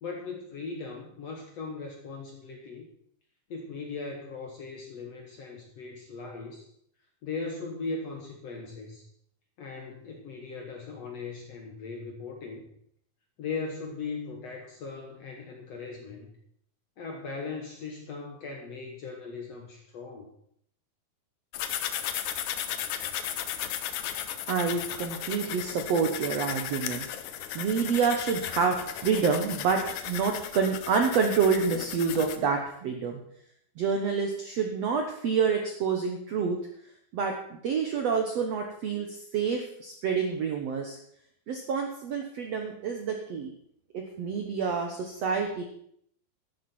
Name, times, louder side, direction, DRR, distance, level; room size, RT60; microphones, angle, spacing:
voice 1, 0.0-2.9 3.5-6.6 7.2-9.1 9.6-12.6 13.4-16.3 17.0-20.3, left 4 dB, 60° left, 2 dB, 1.8 m, -38 dB
sound 1, 21.5-32.4, left 10 dB, 90° left, 1.6 m, -35 dB
voice 2, 24.5-27.1 27.5-29.8 30.1-33.2 33.8-36.6 37.1-37.3 37.6-41.0 41.5-43.5 43.9-45.6, right 5 dB, 70° right, 3 dB, 1.5 m, -28 dB
12.5 x 11.0 x 4.4 m, 0.67 s
omnidirectional pair, 4.5 m